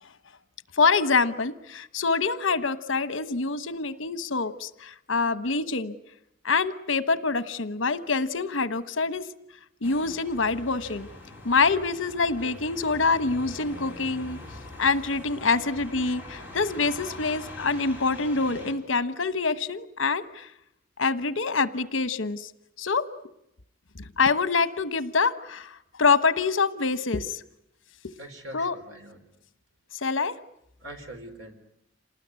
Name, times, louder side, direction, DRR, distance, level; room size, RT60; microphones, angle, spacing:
voice 1, 0.7-5.9 6.4-9.3 9.8-11.1 11.4-14.4 14.8-20.5 21.0-22.5 22.8-23.0 24.2-27.4 28.0-28.2 28.5-28.7 29.9-30.4, left 4 dB, 70° left, 13 dB, 1.2 m, -25 dB
sound 1, 9.8-18.7, left 2 dB, 10° right, 5.1 m, -43 dB
voice 2, 28.2-29.3 30.8-31.5, right 1 dB, 80° right, 5 dB, 4.2 m, -43 dB
27.5 x 19.5 x 9.6 m, 0.81 s
head